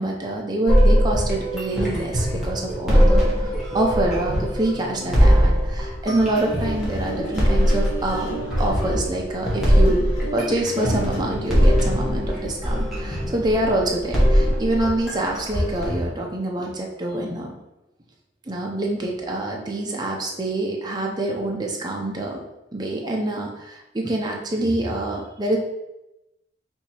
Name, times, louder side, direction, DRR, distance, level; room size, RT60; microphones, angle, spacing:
voice 1, 0.0-8.3 8.6-17.5 18.5-22.4 22.7-25.6, right 1 dB, 20° right, -1 dB, 0.5 m, -26 dB
sound 1, 0.7-16.0, equal, ahead, 1.1 m, -21 dB
sound 2, 6.2-11.9, equal, 70° left, 1.2 m, -34 dB
4.4 x 2.7 x 4.2 m, 0.93 s
head